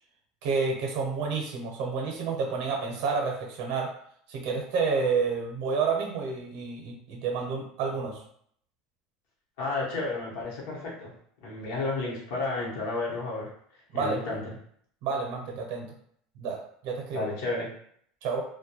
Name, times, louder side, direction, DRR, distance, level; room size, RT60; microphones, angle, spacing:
voice 1, 0.4-3.9 4.3-8.2 13.9-14.2 15.0-15.9 16.4-17.3 18.2-18.4, right 5 dB, 60° right, 0 dB, 0.6 m, -29 dB
voice 2, 9.6-11.1 11.4-13.5 13.9-14.5 17.1-17.7, left 3 dB, 80° left, -4 dB, 0.9 m, -32 dB
2.2 x 2.2 x 2.8 m, 0.65 s
cardioid pair, 160°, 0 cm